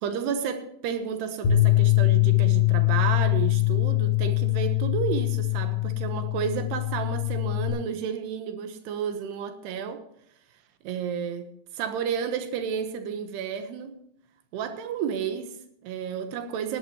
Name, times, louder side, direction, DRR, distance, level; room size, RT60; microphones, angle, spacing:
voice 1, 0.0-10.0 10.8-11.5 11.7-14.0 14.5-16.8, right 7 dB, 80° right, 3.2 m, -31 dB
Bass guitar, 1.4-7.7, left 16 dB, 80° left, 4.4 m, -23 dB
19.0 x 11.5 x 3.1 m
omnidirectional pair, 4.8 m